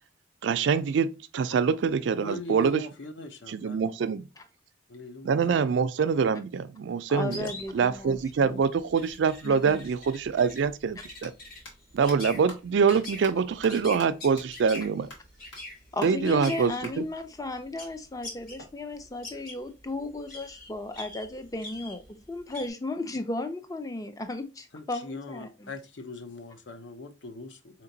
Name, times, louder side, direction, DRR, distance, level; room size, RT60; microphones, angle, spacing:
voice 1, 0.4-2.8 3.5-4.3 5.2-11.3 11.9-15.1 16.0-17.1, right 6 dB, 70° right, 0.3 m, -25 dB
voice 2, 2.2-3.9 4.9-5.7 24.7-27.8, left 2 dB, 70° left, 0.6 m, -41 dB
voice 3, 7.1-8.6 9.4-9.8 15.9-25.7, left 2 dB, 20° left, 0.4 m, -35 dB
sound 1, 7.3-18.7 18.9-22.7, left 2 dB, 45° left, 1.2 m, -44 dB
sound 2, 11.2-11.3 11.6-11.7 12.1-12.2 12.5-12.6 12.9-13.0 13.2-13.3 13.6-13.7 14.0-14.1 14.4-14.5 14.7-14.8 15.1-15.2 15.5-15.6 16.0-16.1 16.4-16.5 16.8-16.9 18.6-19.6, left 1 dB, 85° left, 1.4 m, -44 dB
4.2 x 2.9 x 2.6 m
head